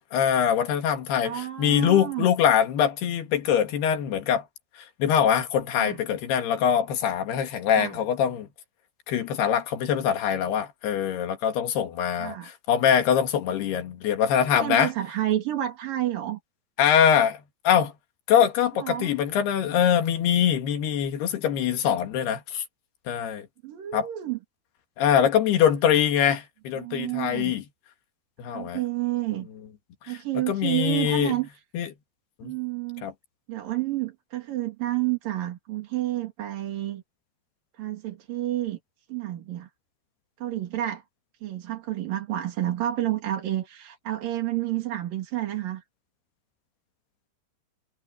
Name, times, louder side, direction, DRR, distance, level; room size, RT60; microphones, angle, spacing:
voice 1, 0.1-4.4 5.0-8.5 9.1-14.9 16.8-17.9 18.3-22.6 23.1-23.5 23.9-24.1 25.0-27.6 28.4-28.8 30.1-31.4 31.7-31.9 32.4-32.5 33.0-33.1, left 8 dB, 80° left, 4.0 m, -23 dB
voice 2, 1.2-2.2 5.8-6.0 7.7-8.0 12.2-12.5 14.3-16.4 18.8-19.1 23.6-24.4 26.8-27.5 28.5-29.5 30.1-31.5 32.4-33.1 33.5-37.0 37.8-38.8 39.1-39.7 40.4-41.0 41.4-45.8, right 14 dB, 60° right, 4.0 m, -30 dB
omnidirectional pair, 4.6 m